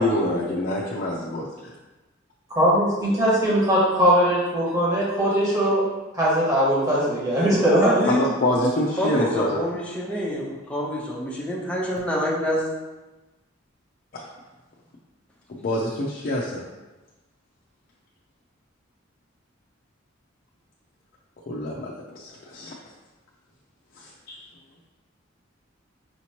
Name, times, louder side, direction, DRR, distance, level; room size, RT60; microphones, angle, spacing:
voice 1, 0.0-1.7 8.1-9.6 14.1-14.2 15.5-16.6 21.5-22.7 24.0-24.4, left 1 dB, 45° left, -5 dB, 0.5 m, -26 dB
voice 2, 2.5-5.8 6.1-8.0, equal, 15° right, -8 dB, 1.4 m, -20 dB
voice 3, 7.8-8.3 9.0-12.7, equal, 5° left, -4 dB, 0.7 m, -27 dB
5.0 x 2.9 x 2.9 m, 1.1 s
head